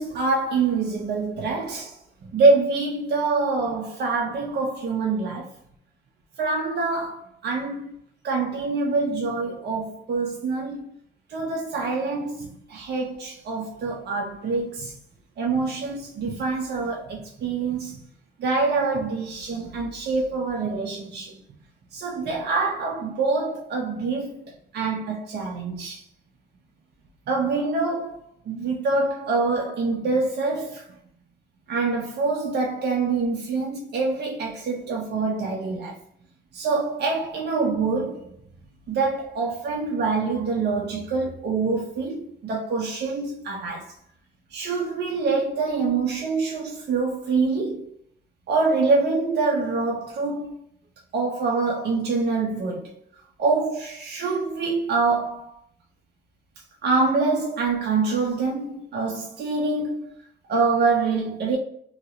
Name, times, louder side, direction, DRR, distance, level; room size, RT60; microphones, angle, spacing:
voice 1, 0.0-1.9 2.3-5.5 6.4-7.9 8.2-10.9 11.3-14.9 15.4-18.0 18.4-21.3 21.9-24.4 24.7-26.0 27.3-28.2 28.5-30.8 31.7-35.9 36.5-38.3 38.9-43.9 44.5-47.9 48.5-50.6 51.1-52.9 53.4-55.6 56.8-60.1 60.5-61.6, right 4 dB, 60° right, 0.7 m, -25 dB
2.8 x 2.8 x 2.7 m
cardioid pair, 90°, 20 cm